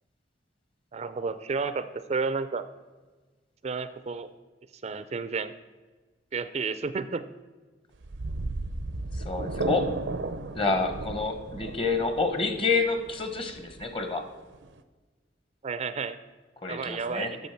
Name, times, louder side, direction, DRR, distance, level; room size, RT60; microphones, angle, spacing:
voice 1, 0.9-2.6 3.6-4.3 4.8-5.5 6.3-7.2 15.6-16.2 16.7-17.4, right 4 dB, 35° right, 13 dB, 0.4 m, -31 dB
sound 1, 7.9-14.8, right 2 dB, 85° right, 0.6 m, -35 dB
voice 2, 9.2-9.9 10.5-14.2 16.6-17.3, left 4 dB, 30° left, 7 dB, 1.0 m, -28 dB
8.3 x 6.8 x 5.8 m, 1.3 s
head